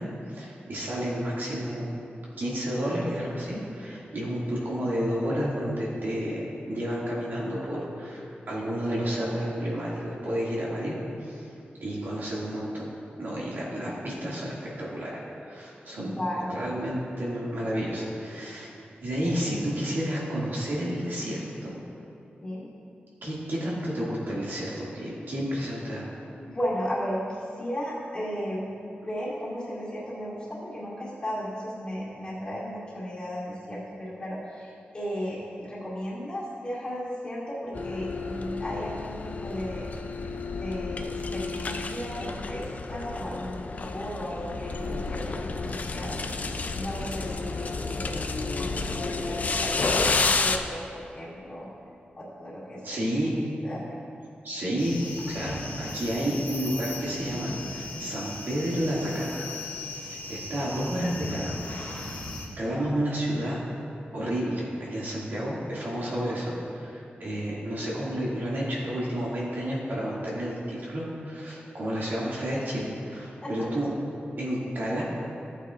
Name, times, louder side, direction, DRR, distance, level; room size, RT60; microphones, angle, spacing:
voice 1, 0.0-1.9 2.4-11.5 11.8-12.9 13.2-16.1 16.5-18.7 19.0-21.8 23.2-26.1 52.8-53.4 54.4-59.4 59.8-62.2 62.6-63.6 64.1-73.9 74.4-75.0, equal, 65° right, -6 dB, 2.2 m, -31 dB
voice 2, 15.9-16.9 19.2-19.4 22.4-22.7 26.4-28.8 29.0-39.9 40.6-46.1 46.7-50.8 51.1-51.7 52.2-53.1 53.6-53.8 73.4-73.7, equal, 25° left, -8 dB, 2.4 m, -35 dB
sound 1, 37.7-50.6, left 3 dB, 45° left, 0.4 m, -30 dB
sound 2, 54.8-62.5, left 2 dB, 75° left, 2.0 m, -38 dB
14.5 x 8.4 x 2.5 m, 2.6 s
wide cardioid pair, 165°, 4 cm